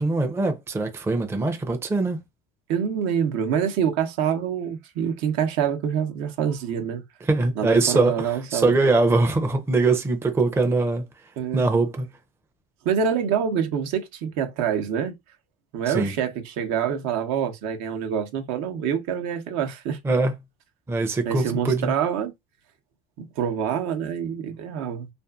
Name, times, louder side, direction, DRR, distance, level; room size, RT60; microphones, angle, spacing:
voice 1, 0.0-2.2 7.2-11.1 11.5-12.1 15.9-16.1 20.0-20.3 20.9-21.9, right 3 dB, 10° right, 0.5 m, -22 dB
voice 2, 2.7-7.0 7.6-8.7 11.4-11.7 12.8-15.1 15.7-20.0 21.2-22.3 23.2-25.1, right 8 dB, 65° right, 0.8 m, -26 dB
2.5 x 2.5 x 2.3 m
supercardioid pair, 90°, 31 cm